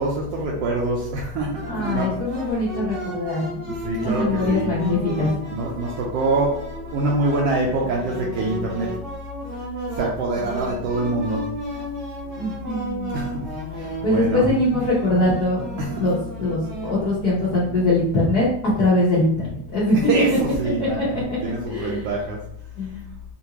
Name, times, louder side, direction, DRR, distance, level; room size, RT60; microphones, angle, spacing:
voice 1, 0.0-2.2 3.8-4.7 5.5-8.9 9.9-11.5 13.1-13.4 13.8-14.5 15.8-16.0 20.1-22.4, right 2 dB, 80° right, -2 dB, 1.4 m, -25 dB
sound 1, 1.5-17.9, right 1 dB, 60° right, 1.1 m, -34 dB
voice 2, 1.7-3.6 3.9-5.3 12.4-13.2 13.8-18.5 18.8-19.9 20.8-21.4 21.7-22.1 22.8-23.0, left 2 dB, 75° left, -7 dB, 0.8 m, -22 dB
5.1 x 2.5 x 2.9 m, 0.69 s
omnidirectional pair, 3.3 m